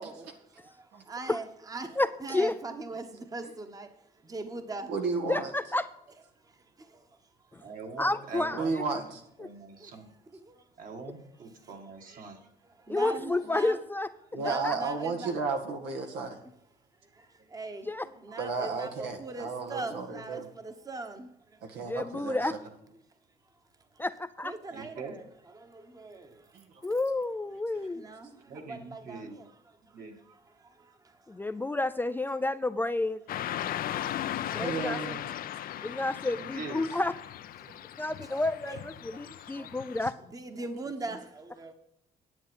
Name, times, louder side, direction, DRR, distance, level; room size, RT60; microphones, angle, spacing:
voice 1, 0.0-4.9 8.0-8.1 9.8-10.7 11.6-11.7 12.3-12.4 12.8-13.8 14.3-15.3 17.0-21.8 23.9-24.0 24.4-25.2 25.5-26.9 27.8-29.5 29.9-31.5 33.7-34.6 35.7-35.8 37.6-38.8 39.1-39.6 40.2-41.7, right 2 dB, 20° right, 7 dB, 1.2 m, -42 dB
voice 2, 2.0-2.5 5.3-5.9 8.0-8.6 8.9-9.0 12.9-14.1 14.6-14.7 17.9-18.1 21.8-22.5 24.0-24.5 26.8-28.1 31.3-33.2 34.5-35.2 35.8-37.1 38.0-40.1, left 2 dB, 10° left, 10 dB, 0.4 m, -30 dB
voice 3, 4.9-5.5 8.5-9.2 14.3-16.4 18.4-20.5 21.6-22.4 26.5-26.6 34.3-35.2 37.6-37.7 39.6-39.7, right 4 dB, 85° right, 4 dB, 2.0 m, -33 dB
voice 4, 7.6-8.8 9.4-10.1 10.8-12.4 22.6-22.7 24.7-25.2 28.4-29.4 29.8-30.1 36.4-36.8, right 4 dB, 55° right, 3 dB, 2.2 m, -43 dB
Car passing by / Traffic noise roadway noise, 33.3-40.1, left 11 dB, 60° left, 0.6 m, -37 dB
10.5 x 8.0 x 5.4 m, 0.81 s
cardioid pair, 110°, 17 cm